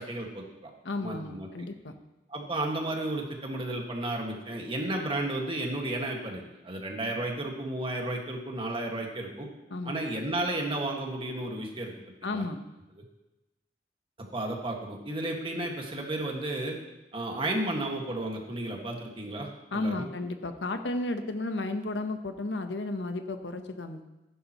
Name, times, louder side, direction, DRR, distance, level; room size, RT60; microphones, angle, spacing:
voice 1, 0.0-0.7 1.0-1.5 2.3-9.5 9.8-11.9 12.3-12.4 13.0-13.1 14.2-16.8 17.1-20.1, right 1 dB, 30° right, 1 dB, 1.8 m, -33 dB
voice 2, 0.8-1.9 9.7-10.0 12.2-12.6 19.7-24.1, left 2 dB, 85° left, 7 dB, 1.0 m, -33 dB
15.5 x 11.0 x 3.0 m, 1.0 s
head